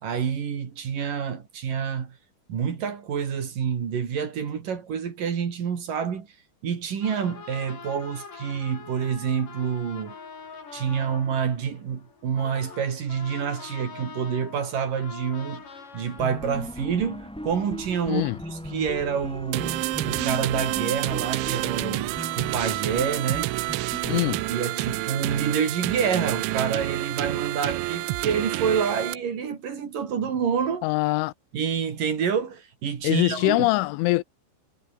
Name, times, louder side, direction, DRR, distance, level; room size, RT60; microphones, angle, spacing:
voice 1, 0.0-2.2 2.5-6.3 6.6-10.2 10.7-15.6 15.9-23.5 24.1-24.2 24.5-30.9 31.5-33.7, right 7 dB, 50° right, 4.1 m, -28 dB
sound 1, 7.0-17.5, left 5 dB, 45° left, 6.3 m, -44 dB
sound 2, 16.2-25.0, equal, 5° left, 0.9 m, -38 dB
voice 2, 18.1-18.4 24.1-24.4 30.8-31.3 33.0-34.2, left 20 dB, 85° left, 3.3 m, -23 dB
sound 3, 19.5-29.1, right 19 dB, 80° right, 3.2 m, -29 dB
omnidirectional pair, 5.4 m